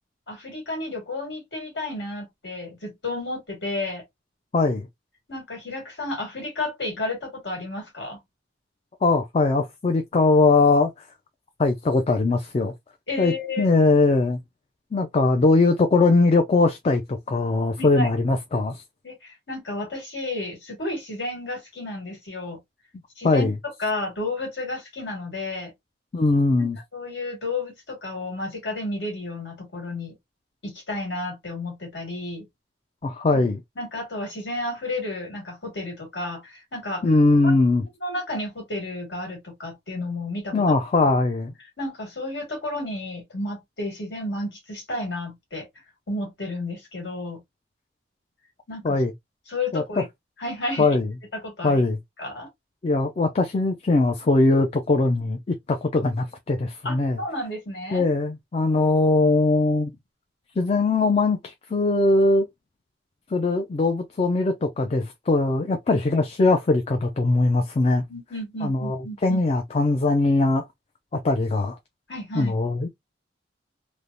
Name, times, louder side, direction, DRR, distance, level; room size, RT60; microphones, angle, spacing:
voice 1, 0.3-4.0 5.3-8.2 13.1-13.7 17.8-18.1 19.0-22.6 23.2-25.7 26.6-30.1 30.6-32.4 33.3-33.4 33.8-37.0 37.4-37.5 38.0-40.8 41.8-45.7 46.1-47.4 48.7-49.0 49.5-50.1 50.4-50.9 51.3-51.8 52.2-52.5 56.8-58.0 65.9-66.0 68.1-69.4 72.1-72.5, left 2 dB, 70° left, 1.7 m, -32 dB
voice 2, 4.5-4.9 9.0-11.1 11.6-12.7 13.2-14.4 14.9-18.8 23.2-23.5 26.1-26.8 33.0-33.6 37.0-37.9 40.5-41.5 48.8-49.1 49.7-50.0 50.8-51.1 51.6-52.0 52.8-57.2 57.9-60.0 60.6-62.5 63.3-68.0 68.6-70.7 71.1-71.8 72.3-72.9, left 3 dB, 35° left, 0.4 m, -21 dB
3.2 x 2.1 x 2.5 m
head